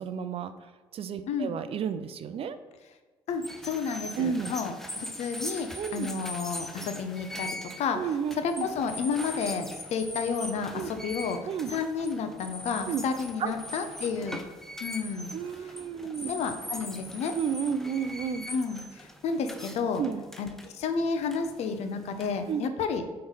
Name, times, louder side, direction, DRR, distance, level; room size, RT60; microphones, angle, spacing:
voice 1, 0.0-2.6 4.2-4.5 5.8-6.1 7.9-8.7 10.7-11.0 11.4-11.7 12.9-13.0 13.4-13.5 15.3-16.3 17.3-18.5 20.0-20.3 22.5-22.6, right 7 dB, 55° right, 11 dB, 0.5 m, -32 dB
voice 2, 3.3-8.0 8.4-11.4 11.7-14.4 14.8-15.3 16.2-17.3 18.5-20.0 20.4-23.1, left 5 dB, 70° left, 8 dB, 0.7 m, -31 dB
sound 1, 3.3-22.6, left 1 dB, 5° left, 0.6 m, -41 dB
7.9 x 3.3 x 4.0 m, 1.3 s
supercardioid pair, 70°, 11 cm